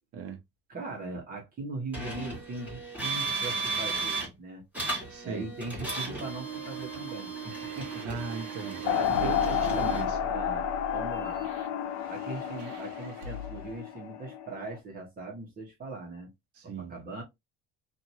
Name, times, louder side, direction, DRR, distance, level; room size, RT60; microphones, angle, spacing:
voice 1, 0.7-4.6 5.2-8.0 8.8-9.9 10.3-11.5 12.1-16.3 16.6-17.2, right 3 dB, 30° right, 1.1 m, -40 dB
sound 1, 1.9-4.3 4.7-10.0, right 4 dB, 5° right, 1.6 m, -35 dB
voice 2, 5.1-5.5 8.0-8.8 9.2-10.2 16.5-16.9, right 5 dB, 50° right, 0.9 m, -37 dB
sound 2, 7.4-13.8, right 3 dB, 90° right, 1.0 m, -43 dB
sound 3, 8.8-14.8, left 9 dB, 75° left, 0.7 m, -31 dB
2.8 x 2.6 x 2.7 m
cardioid pair, 145°, 29 cm